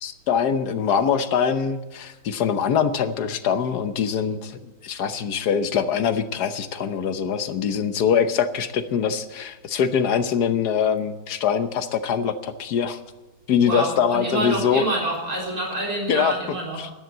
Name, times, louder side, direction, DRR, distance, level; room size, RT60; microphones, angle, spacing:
voice 1, 0.0-13.0 13.5-14.8 16.1-16.3 16.8-16.9, left 7 dB, 80° left, 10 dB, 1.5 m, -23 dB
voice 2, 13.6-16.9, right 2 dB, 65° right, -3 dB, 4.6 m, -27 dB
12.5 x 10.5 x 7.9 m, 1.1 s
omnidirectional pair, 1.7 m